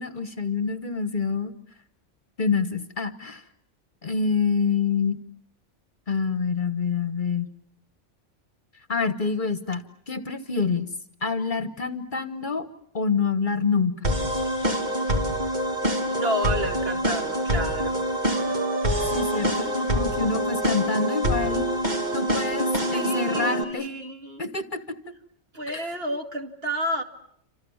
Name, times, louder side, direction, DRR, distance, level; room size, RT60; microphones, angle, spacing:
voice 1, 0.0-1.5 2.4-3.4 4.0-5.2 6.1-7.5 8.9-10.9 11.2-12.7 12.9-14.1 19.1-21.6 22.1-23.9 24.4-25.0 25.7-25.9, left 5 dB, 45° left, 12 dB, 1.4 m, -27 dB
sound 1, 14.0-23.6, equal, 35° right, 2.6 m, -25 dB
voice 2, 16.1-18.0 22.9-24.5 25.5-27.0, equal, 55° right, 5 dB, 2.6 m, -30 dB
28.0 x 26.5 x 7.2 m, 0.69 s
omnidirectional pair, 1.2 m